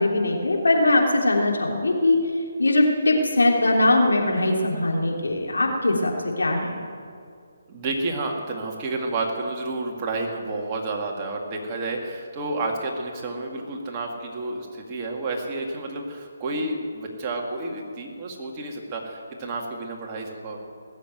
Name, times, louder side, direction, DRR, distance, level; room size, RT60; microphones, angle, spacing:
voice 1, 0.0-2.2 2.6-6.8, left 2 dB, 80° left, 0 dB, 3.2 m, -21 dB
voice 2, 7.7-20.6, right 2 dB, 25° right, 0 dB, 2.3 m, -30 dB
19.0 x 7.9 x 9.2 m, 2.3 s
figure-of-eight pair, 150°, 0 cm